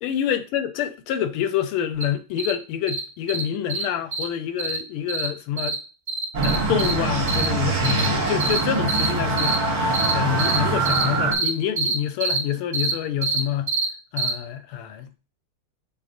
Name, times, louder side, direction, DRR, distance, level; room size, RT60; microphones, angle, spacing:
voice 1, 0.0-5.8 6.4-9.8 10.1-13.7 14.1-15.1, left 10 dB, 90° left, 1.5 m, -27 dB
sound 1, 2.0-2.1 2.4-2.5 2.9-3.0 3.3-3.4 3.7-3.8 4.1-4.2 4.6-4.8 5.1-5.3 5.6-5.7 6.1-6.9 7.3-7.4 7.8-8.1 8.4-8.6 8.9-9.1 9.4-9.5 9.9-10.1 10.4-10.6 10.8-11.0 11.3-11.5 11.8-11.9 12.2-12.4 12.7-12.9 13.2-13.4 13.7-13.8 14.2-14.3, right 6 dB, 75° right, 0.4 m, -25 dB
sound 2, 6.3-11.3, right 3 dB, 55° right, 1.3 m, -23 dB
6.8 x 2.4 x 2.5 m
omnidirectional pair, 2.3 m